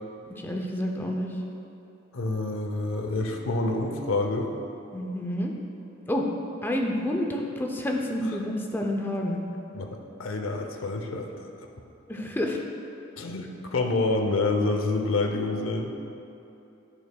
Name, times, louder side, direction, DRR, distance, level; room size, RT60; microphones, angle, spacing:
voice 1, 0.3-1.3 4.9-5.5 6.1-6.3 6.6-9.4 12.1-12.6, left 1 dB, 10° left, 1 dB, 0.5 m, -29 dB
voice 2, 2.1-4.5 9.7-9.9 10.2-11.3 13.2-15.9, left 2 dB, 85° left, 3 dB, 0.7 m, -27 dB
9.8 x 6.3 x 2.3 m, 2.9 s
head